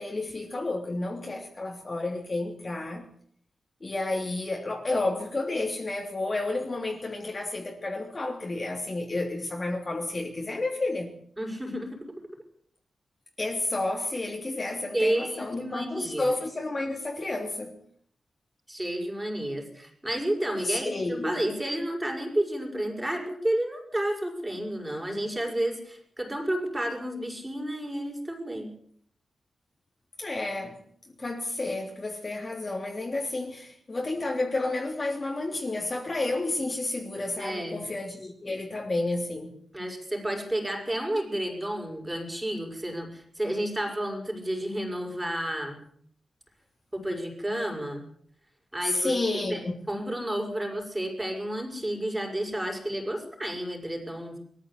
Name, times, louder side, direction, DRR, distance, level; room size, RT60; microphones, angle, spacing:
voice 1, 0.0-3.1 3.8-11.1 13.4-17.8 20.6-21.4 30.2-30.8 31.2-39.5 48.8-49.8, left 2 dB, 25° left, 3.1 m, -31 dB
voice 2, 11.4-12.0 14.9-16.3 18.7-28.7 37.4-37.8 39.7-45.8 46.9-48.0 48.7-49.1 49.5-49.6 49.9-54.4, right 1 dB, 10° right, 5.9 m, -31 dB
23.0 x 14.5 x 8.4 m
wide cardioid pair, 165°, 0 cm